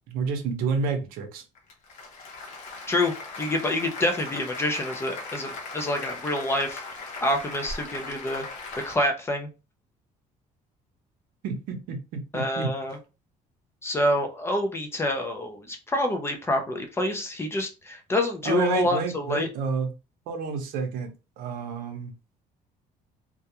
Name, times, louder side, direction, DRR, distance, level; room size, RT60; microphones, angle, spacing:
voice 1, 0.1-1.4 11.4-12.7 18.4-19.9 20.3-22.1, right 5 dB, 75° right, 6 dB, 0.6 m, -30 dB
Applause, 1.6-9.0, left 3 dB, 55° left, 0.7 m, -39 dB
voice 2, 3.4-6.8 7.2-8.5 8.8-9.5 12.3-13.0 13.8-19.5, left 1 dB, 15° left, 5 dB, 0.4 m, -27 dB
2.3 x 2.1 x 2.8 m, 0.30 s
cardioid pair, 165°, 15 cm